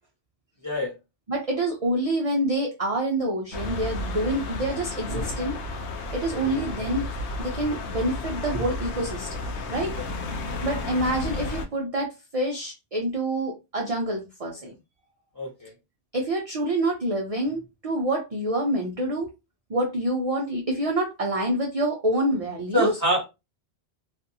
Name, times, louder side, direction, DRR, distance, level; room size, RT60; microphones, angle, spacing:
voice 1, 1.3-5.5 6.1-7.0 7.4-9.3 9.7-9.9 10.6-14.7 16.1-19.3 19.7-22.9, right 1 dB, 45° right, 0 dB, 0.5 m, -27 dB
sound 1, 3.5-11.7, left 2 dB, 80° left, 0.9 m, -32 dB
voice 2, 15.3-15.7 22.7-23.3, equal, 15° left, -3 dB, 1.1 m, -26 dB
2.6 x 2.4 x 2.6 m, 0.25 s
omnidirectional pair, 1.1 m